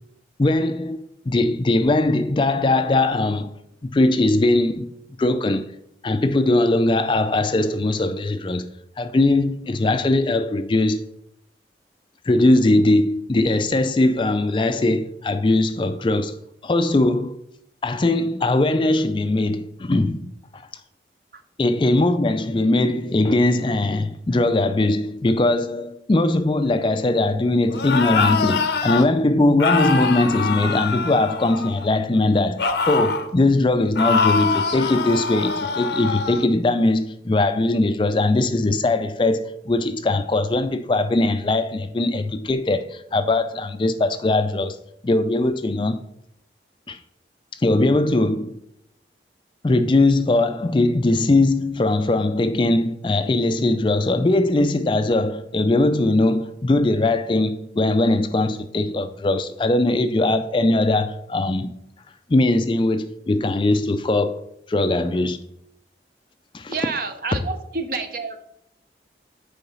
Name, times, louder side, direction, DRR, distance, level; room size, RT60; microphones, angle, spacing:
voice 1, 0.4-3.5 3.9-4.9 5.2-5.7 6.0-8.7 9.0-11.0 12.3-16.4 16.6-17.4 17.8-20.6 21.6-44.8 45.0-46.0 46.9-47.0 47.6-48.6 49.6-61.7 62.3-64.4 64.7-65.4 66.5-66.7, left 2 dB, 25° left, 0.4 m, -20 dB
sound 1, 27.7-29.1 29.6-31.9 32.6-33.3 34.0-36.4, left 5 dB, 75° left, 0.7 m, -23 dB
voice 2, 66.7-68.5, right 4 dB, 55° right, 0.8 m, -29 dB
6.9 x 4.6 x 5.5 m
head